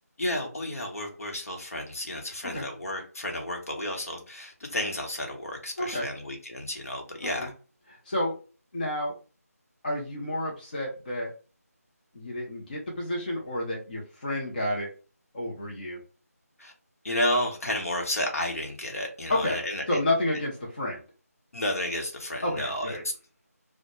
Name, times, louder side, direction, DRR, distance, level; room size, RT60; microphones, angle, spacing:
voice 1, 0.2-7.5 16.6-16.7 17.0-20.0 21.5-23.0, left 1 dB, 60° left, 0.9 m, -31 dB
voice 2, 5.8-6.1 7.4-7.5 7.9-8.3 8.7-9.1 9.8-11.3 12.1-14.9 15.3-16.0 19.3-19.6 19.9-21.0 22.4-23.0, left 1 dB, 30° left, 0.6 m, -30 dB
2.1 x 2.1 x 3.0 m
figure-of-eight pair, 165°, 9 cm